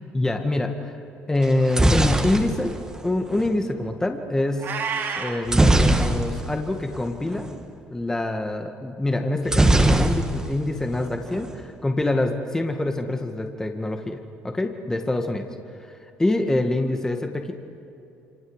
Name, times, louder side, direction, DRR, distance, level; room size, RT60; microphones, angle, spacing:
voice 1, 0.1-1.0 1.3-2.7 3.0-4.7 5.0-7.5 7.9-14.2 14.4-15.5 15.8-17.5, left 2 dB, 10° left, 4 dB, 2.0 m, -25 dB
sound 1, 1.4-3.5 5.5-6.6 6.9-7.1 7.3-7.6 9.5-10.6 10.9-11.6, right 1 dB, 15° right, 2.1 m, -20 dB
Meow, 4.6-5.4, right 6 dB, 50° right, 3.7 m, -29 dB
27.5 x 26.0 x 8.2 m, 2.8 s
cardioid pair, 100°, 5 cm